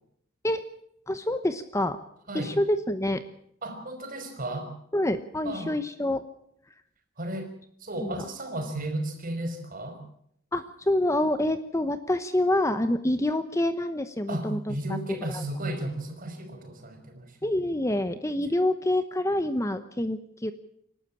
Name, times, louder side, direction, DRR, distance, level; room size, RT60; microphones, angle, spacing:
voice 1, 1.1-2.0 2.3-3.2 4.9-6.2 8.0-8.1 10.5-14.7 15.3-15.4 17.4-20.5, left 1 dB, 15° left, 10 dB, 0.9 m, -27 dB
voice 2, 2.3-2.6 3.6-4.7 5.4-5.7 7.2-7.5 7.8-10.0 14.3-17.5, right 1 dB, 40° right, 6 dB, 5.4 m, -34 dB
28.0 x 12.5 x 8.6 m, 0.71 s
head